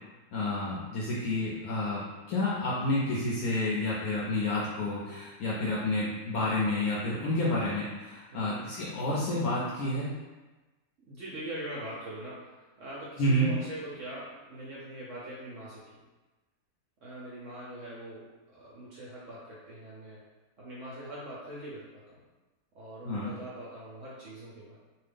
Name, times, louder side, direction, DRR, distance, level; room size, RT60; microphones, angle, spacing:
voice 1, 0.3-2.0 2.3-10.1 13.2-13.5 23.1-23.3, left 1 dB, 70° left, -6 dB, 0.9 m, -29 dB
voice 2, 8.3-8.7 11.1-16.1 17.0-20.2 20.6-22.2 22.7-24.8, right 1 dB, 65° right, -6 dB, 0.8 m, -42 dB
2.8 x 2.4 x 3.3 m, 1.2 s
omnidirectional pair, 1.8 m